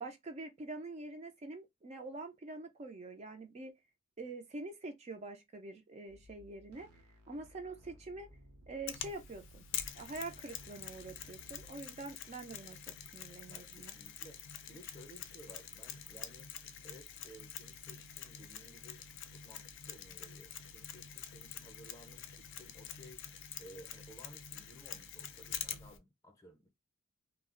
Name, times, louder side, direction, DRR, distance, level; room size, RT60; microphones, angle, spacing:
voice 1, 0.0-3.7 4.2-8.3 8.7-9.7 10.0-12.8 13.1-14.0, right 3 dB, 30° right, 0.4 m, -45 dB
sound 1, 6.1-11.7, equal, 85° right, 0.8 m, -60 dB
Mechanisms, 8.9-26.0, left 9 dB, 60° left, 0.4 m, -46 dB
voice 2, 13.5-16.5 16.8-19.0 19.3-23.3 23.6-26.7, right 1 dB, 15° left, 0.6 m, -57 dB
2.3 x 2.0 x 3.6 m
head